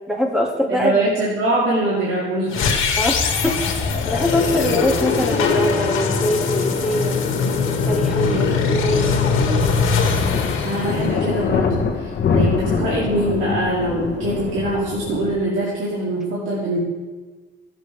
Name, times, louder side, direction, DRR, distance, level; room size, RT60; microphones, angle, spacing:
voice 1, 0.1-1.0 3.0-3.6 4.0-7.2 7.9-9.9, left 1 dB, 5° right, 0 dB, 2.0 m, -23 dB
voice 2, 0.7-3.0 8.2-8.5 10.6-16.8, right 1 dB, 75° right, -6 dB, 2.5 m, -23 dB
sound 1, 2.5-11.7, left 5 dB, 85° left, 1.8 m, -21 dB
Wind instrument woodwind instrument, 3.8-8.7, left 3 dB, 30° left, 1.2 m, -40 dB
sound 2, 10.1-15.3, left 5 dB, 55° left, 1.3 m, -24 dB
17.0 x 7.4 x 3.3 m, 1.3 s
cardioid pair, 90°, 20 cm